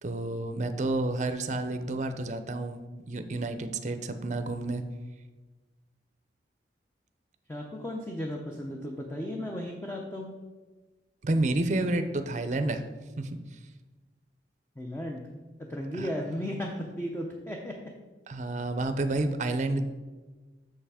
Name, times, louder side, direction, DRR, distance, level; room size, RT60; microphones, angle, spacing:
voice 1, 0.0-2.8 3.1-4.8 11.2-12.8 13.2-13.4 15.9-16.1 18.3-19.8, right 2 dB, 40° right, 9 dB, 0.5 m, -30 dB
voice 2, 7.5-10.3 14.8-15.2 15.7-17.7, equal, 15° left, 0 dB, 0.6 m, -35 dB
6.7 x 5.6 x 4.9 m, 1.3 s
head